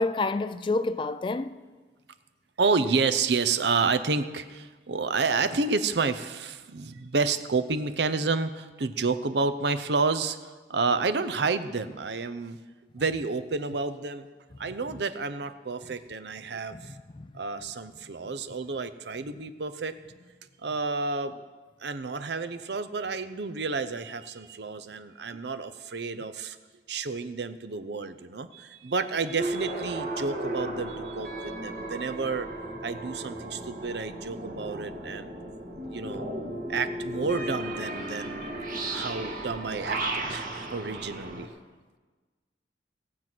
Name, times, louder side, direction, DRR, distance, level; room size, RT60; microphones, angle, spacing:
voice 1, 0.0-1.6 16.7-16.8 17.1-17.3, left 3 dB, 30° left, 0.3 m, -28 dB
voice 2, 2.6-12.6 12.9-14.3 14.6-16.9 17.3-20.0 20.6-21.4 21.8-26.6 26.9-32.5 32.8-35.4 35.9-36.3 36.7-38.5 38.9-41.5, right 4 dB, 75° right, 0.7 m, -30 dB
sound 1, 29.4-41.5, right 1 dB, 50° right, 1.9 m, -35 dB
18.0 x 7.5 x 6.1 m
head